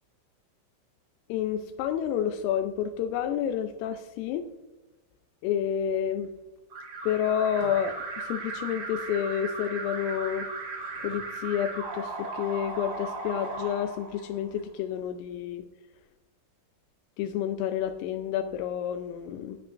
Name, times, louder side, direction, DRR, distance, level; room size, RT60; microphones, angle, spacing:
voice 1, 1.3-4.5 5.4-6.3 7.0-10.5 11.0-15.6 17.2-19.6, left 9 dB, 85° left, 7 dB, 3.2 m, -29 dB
Alarm, 6.7-14.6, right 3 dB, 70° right, 7.6 m, -37 dB
17.5 x 11.5 x 2.6 m, 1.0 s
omnidirectional pair, 5.8 m